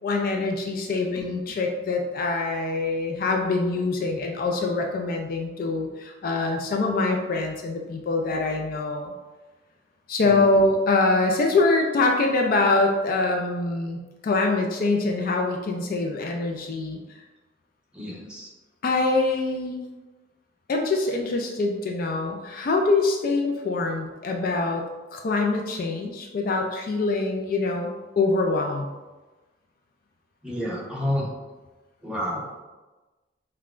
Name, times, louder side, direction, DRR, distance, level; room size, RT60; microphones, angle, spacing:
voice 1, 0.0-9.1 10.1-17.0 18.8-19.9 20.7-24.8 25.1-27.9 28.2-28.9, left 3 dB, 50° left, 2 dB, 0.4 m, -24 dB
voice 2, 10.2-10.6 17.9-18.5 30.4-31.3 32.0-32.6, left 1 dB, 5° right, -6 dB, 0.9 m, -30 dB
5.4 x 2.2 x 2.4 m, 1.2 s
head